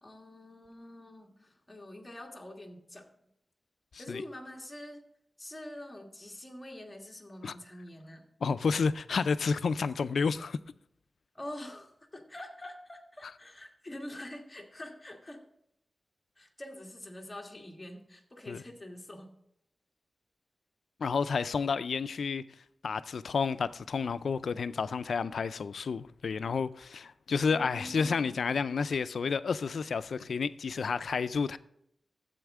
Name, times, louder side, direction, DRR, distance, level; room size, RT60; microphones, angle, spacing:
voice 1, 0.0-3.1 4.0-5.0 5.4-8.3 11.3-15.4 16.4-19.3 27.5-28.3, left 1 dB, 15° left, 1.6 m, -45 dB
voice 2, 8.4-10.6 18.5-18.6 21.0-22.4 22.8-31.6, left 5 dB, 90° left, 0.4 m, -30 dB
12.5 x 8.0 x 3.6 m
wide cardioid pair, 120°, 0 cm